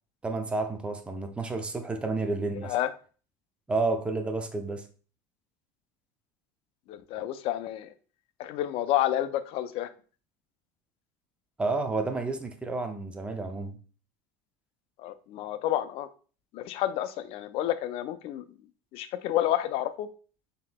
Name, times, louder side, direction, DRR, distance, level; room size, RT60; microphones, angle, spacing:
voice 1, 0.2-2.8 3.7-4.9 11.6-13.8, right 3 dB, 10° right, 0.5 m, -30 dB
voice 2, 6.9-7.9 8.4-9.9 15.0-16.1 16.5-18.4 18.9-20.1, left 13 dB, 55° left, 0.4 m, -29 dB
5.7 x 2.8 x 2.2 m
supercardioid pair, 110°, 11 cm